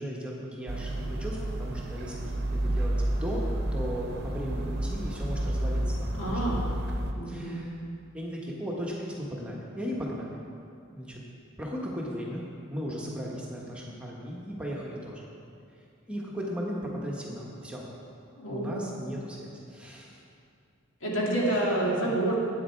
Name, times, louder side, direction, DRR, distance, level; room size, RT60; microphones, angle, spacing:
voice 1, 0.0-3.0 3.2-3.4 3.7-6.5 7.2-7.8 8.1-10.3 10.9-11.2 11.6-15.2 16.1-17.8 18.5-20.2 21.5-22.1, equal, 5° right, -4 dB, 1.4 m, -36 dB
sound 1, 0.7-7.1, right 1 dB, 55° right, 0.8 m, -30 dB
voice 2, 6.1-6.6 7.1-7.7 18.4-18.9 21.0-22.4, right 1 dB, 75° left, -4 dB, 2.4 m, -28 dB
10.0 x 9.0 x 4.6 m, 2.4 s
head